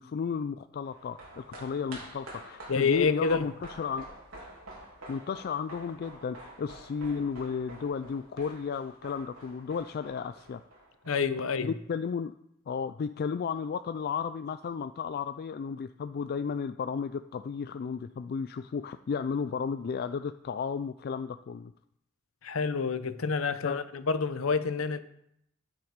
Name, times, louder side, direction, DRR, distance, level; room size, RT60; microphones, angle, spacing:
voice 1, 0.0-4.1 5.1-10.6 11.6-12.3 12.7-21.7 23.6-23.8, left 6 dB, 45° left, 0.3 m, -33 dB
sound 1, 0.8-11.4 11.7-11.8, right 1 dB, 85° right, 3.2 m, -48 dB
voice 2, 2.7-3.5 11.1-11.7 22.4-25.0, left 5 dB, 70° left, 0.7 m, -28 dB
9.9 x 9.3 x 5.1 m
head